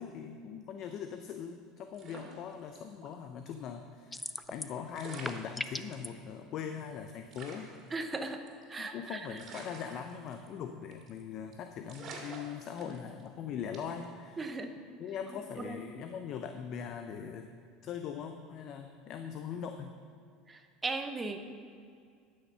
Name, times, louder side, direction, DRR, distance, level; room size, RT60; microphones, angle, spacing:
voice 1, 0.0-7.7 8.8-14.5 15.0-17.5 17.8-19.9, left 7 dB, 50° left, 6 dB, 0.6 m, -41 dB
sound 1, 1.9-3.1 3.5-3.6 4.6-4.7 4.9-6.1 6.6-6.7 6.9-7.0 7.3-8.9 9.4-10.6 10.9-11.2 11.5-11.6 11.9-13.3 13.7-14.0, right 4 dB, 40° right, 2.4 m, -48 dB
sound 2, 4.1-4.8 5.1-6.1, left 2 dB, 10° left, 0.4 m, -38 dB
voice 2, 7.9-8.4 8.7-9.2 14.4-14.7 15.6-15.8 20.5-21.4, right 3 dB, 20° right, 7 dB, 0.9 m, -37 dB
11.5 x 6.5 x 5.6 m, 2.2 s
supercardioid pair, 105°, 0 cm